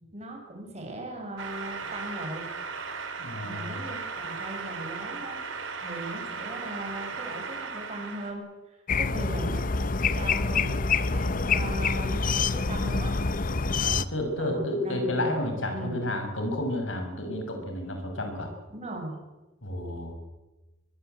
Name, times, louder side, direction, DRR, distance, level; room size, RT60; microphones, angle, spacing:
voice 1, 0.1-2.4 3.4-5.4 5.7-9.7 9.9-13.1 14.4-16.0 18.7-19.2, right 1 dB, 35° right, 2 dB, 6.8 m, -38 dB
sound 1, 1.4-8.3, right 4 dB, 80° right, 3.9 m, -36 dB
voice 2, 3.2-3.7 13.8-18.5 19.6-20.1, left 1 dB, 75° left, 4 dB, 6.5 m, -31 dB
sound 2, 8.9-14.1, left 4 dB, 45° left, 0.9 m, -26 dB
23.0 x 22.5 x 8.3 m, 1.1 s
head